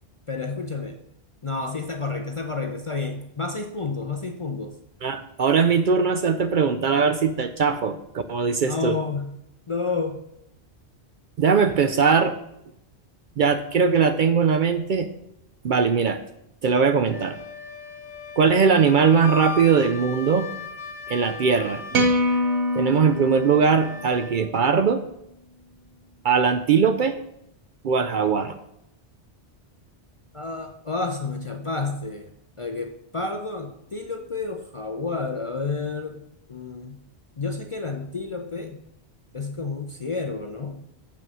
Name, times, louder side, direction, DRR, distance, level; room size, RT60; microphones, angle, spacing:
voice 1, 0.3-1.0 1.4-4.7 8.6-9.3 9.7-10.2 30.3-32.3 32.6-36.2 36.5-37.0 37.4-38.8 39.3-40.8, left 4 dB, 40° left, 5 dB, 0.5 m, -30 dB
voice 2, 5.0-9.0 11.4-12.4 13.4-15.1 15.6-16.2 16.6-17.4 18.4-20.5 21.1-21.8 22.7-25.0 26.2-27.2 27.8-28.6, right 6 dB, 60° right, 9 dB, 0.6 m, -20 dB
Wind instrument woodwind instrument, 17.1-24.5, left 4 dB, 80° left, 1.0 m, -38 dB
sound 1, 21.9-24.3, equal, 80° right, 1.1 m, -24 dB
7.1 x 5.6 x 6.1 m, 0.80 s
omnidirectional pair, 1.1 m